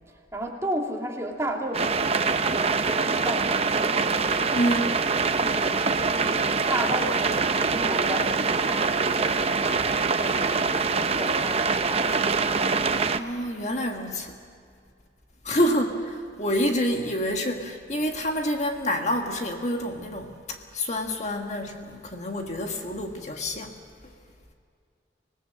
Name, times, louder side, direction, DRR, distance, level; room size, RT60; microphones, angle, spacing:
voice 1, 0.3-4.0 5.4-9.6 10.2-12.1 15.5-15.6, right 1 dB, 15° right, 0 dB, 2.6 m, -33 dB
sound 1, 1.7-13.2, right 4 dB, 35° right, 0.8 m, -24 dB
voice 2, 4.5-4.9 13.2-14.3 15.4-20.3 20.7-23.7, equal, 40° left, 3 dB, 1.6 m, -27 dB
26.0 x 19.0 x 7.6 m, 2.3 s
head